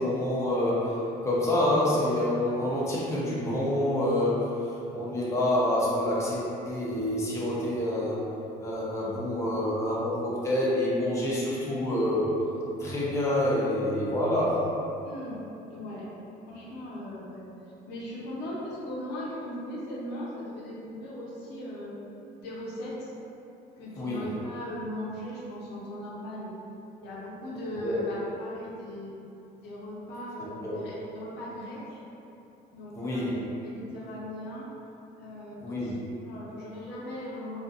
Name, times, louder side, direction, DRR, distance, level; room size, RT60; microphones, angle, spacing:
voice 1, 0.0-8.2 8.6-12.4 12.8-14.7 24.0-24.3 27.8-28.0 30.6-30.8 32.9-33.4 35.6-35.9, left 1 dB, 15° left, -6 dB, 0.5 m, -27 dB
voice 2, 15.0-15.4 15.7-16.1 16.5-17.4 17.9-21.9 22.4-23.1 23.8-26.5 27.0-29.2 29.6-32.0 32.7-33.3 33.6-34.7 35.2-37.6, left 1 dB, 85° left, -6 dB, 0.6 m, -38 dB
2.4 x 2.4 x 2.6 m, 2.8 s
cardioid pair, 110°, 17 cm